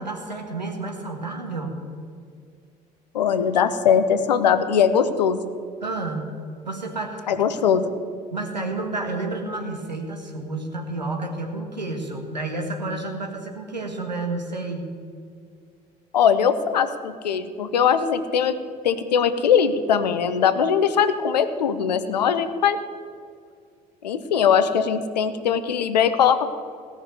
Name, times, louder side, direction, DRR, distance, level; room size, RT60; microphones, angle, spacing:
voice 1, 0.0-1.8 5.8-6.4 6.7-7.4 8.3-14.9, right 2 dB, 85° right, 3 dB, 1.6 m, -30 dB
voice 2, 3.1-5.4 7.3-7.9 16.1-18.5 18.8-22.8 24.0-26.5, left 7 dB, 75° left, 11 dB, 0.9 m, -20 dB
17.0 x 6.4 x 9.3 m, 2.2 s
figure-of-eight pair, 55°, 21 cm